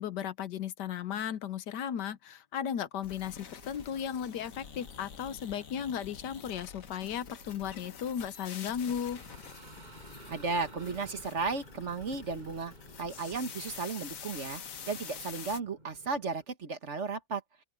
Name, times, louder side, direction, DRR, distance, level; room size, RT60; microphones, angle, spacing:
voice 1, 0.0-9.2, left 9 dB, 70° left, 1.4 m, -35 dB
sound 1, 3.0-15.6, left 7 dB, 50° left, 1.4 m, -47 dB
sound 2, 3.2-13.3, right 2 dB, 75° right, 7.0 m, -62 dB
sound 3, 8.7-16.4, right 1 dB, 25° right, 6.0 m, -54 dB
voice 2, 10.3-14.6 14.9-17.4, right 4 dB, 45° right, 1.5 m, -34 dB
open air
omnidirectional pair, 1.9 m